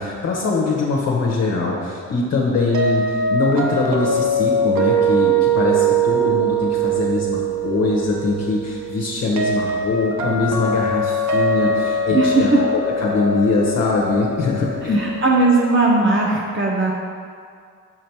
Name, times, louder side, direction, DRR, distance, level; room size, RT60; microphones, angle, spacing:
voice 1, 0.0-12.5 13.0-15.1, left 3 dB, 55° left, -3 dB, 1.2 m, -22 dB
sound 1, 2.7-15.6, right 3 dB, 70° right, 1.0 m, -22 dB
voice 2, 12.1-12.6 14.8-16.9, right 3 dB, 40° right, -3 dB, 0.9 m, -18 dB
6.4 x 5.1 x 4.6 m, 2.2 s
cardioid pair, 90°, 30 cm